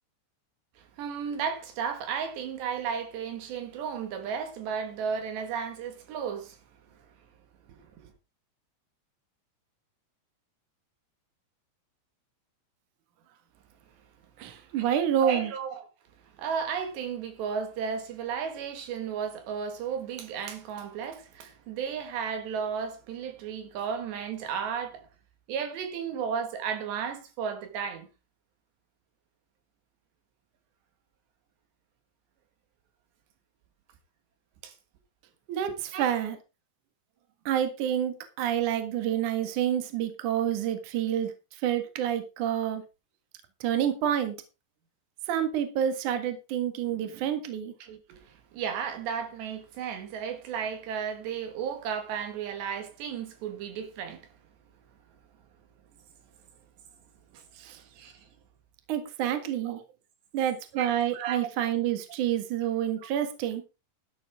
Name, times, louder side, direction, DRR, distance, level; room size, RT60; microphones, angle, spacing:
voice 1, 0.8-6.6 7.7-8.1 14.7-15.9 16.4-25.1 25.5-28.1 34.6-34.8 35.7-36.1 47.8-54.3 57.3-58.2 59.7-59.8 60.7-61.5, right 7 dB, 75° right, 4.0 m, -34 dB
voice 2, 14.4-15.5 35.5-36.4 37.5-41.3 41.6-42.8 43.6-44.4 45.3-47.7 57.6-57.8 58.9-59.8 60.3-63.6, right 10 dB, 55° right, 2.7 m, -28 dB
12.5 x 11.0 x 3.6 m
omnidirectional pair, 5.0 m